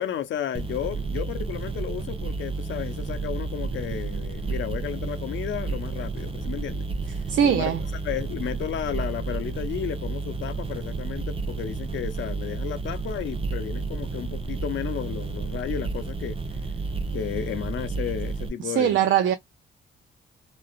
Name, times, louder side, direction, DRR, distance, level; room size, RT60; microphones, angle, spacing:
voice 1, 0.0-7.2 7.4-7.7 8.0-16.4 17.1-19.0, left 9 dB, 65° left, 0.7 m, -33 dB
sound 1, 0.5-18.5, right 3 dB, 25° right, 0.7 m, -31 dB
voice 2, 7.3-7.8 18.6-19.3, right 9 dB, 65° right, 0.4 m, -21 dB
3.2 x 2.4 x 2.3 m
cardioid pair, 95°, 21 cm